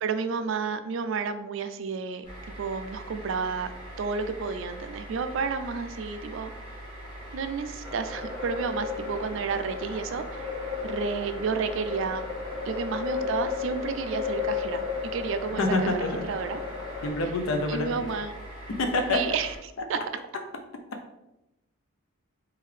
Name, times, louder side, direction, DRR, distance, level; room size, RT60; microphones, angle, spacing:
voice 1, 0.0-2.2 2.6-3.7 4.0-6.5 7.3-12.2 12.6-16.6 17.2-17.3 17.7-18.3 19.1-19.5 19.9-20.0, right 5 dB, 65° right, 10 dB, 0.3 m, -31 dB
sound 1, 2.2-19.6, right 1 dB, 20° left, 1.2 m, -42 dB
sound 2, 7.8-17.1, left 6 dB, 15° right, 1.5 m, -34 dB
voice 2, 15.6-16.2 17.0-18.2 18.8-19.2, left 2 dB, 70° left, 4 dB, 0.5 m, -26 dB
3.6 x 3.3 x 3.2 m, 0.92 s
head